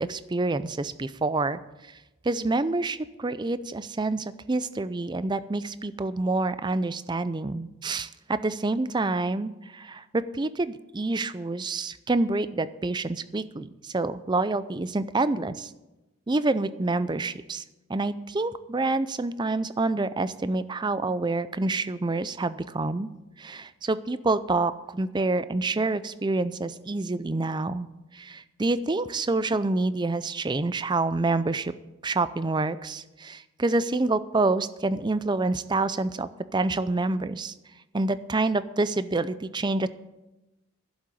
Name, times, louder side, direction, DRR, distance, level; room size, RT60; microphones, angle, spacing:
voice 1, 0.0-1.6 2.2-15.7 16.3-17.6 17.9-23.1 23.4-27.9 28.1-31.7 32.0-37.5 37.9-39.9, right 2 dB, 20° right, 14 dB, 0.4 m, -27 dB
11.5 x 7.6 x 8.5 m, 1.0 s
head